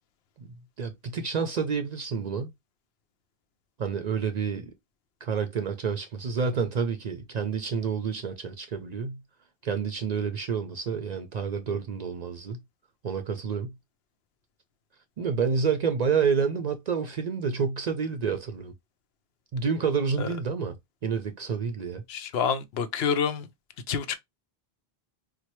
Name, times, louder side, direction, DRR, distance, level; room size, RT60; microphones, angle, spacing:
voice 1, 0.4-2.5 3.8-4.7 5.2-9.2 9.6-12.6 13.0-13.7 15.2-18.7 19.5-20.8 21.0-22.0, right 6 dB, 55° right, 0.5 m, -29 dB
voice 2, 22.1-23.5 23.9-24.1, left 7 dB, 75° left, 0.8 m, -27 dB
4.3 x 2.1 x 3.0 m
omnidirectional pair, 1.0 m